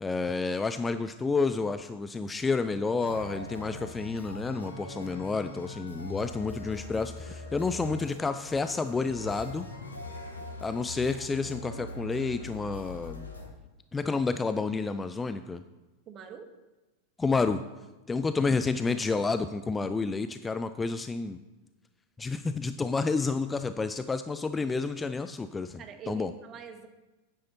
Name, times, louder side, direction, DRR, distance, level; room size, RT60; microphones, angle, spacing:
voice 1, 0.0-9.7 10.6-13.3 13.9-15.6 17.2-17.6 18.1-21.4 22.2-26.3, left 4 dB, 15° left, 11 dB, 0.4 m, -30 dB
sound 1, 3.0-13.5, left 1 dB, 80° left, 1.8 m, -42 dB
voice 2, 16.1-16.5 25.8-26.9, right 7 dB, 30° right, 6 dB, 1.3 m, -44 dB
9.6 x 9.4 x 4.2 m, 1.1 s
figure-of-eight pair, 90°, 0 cm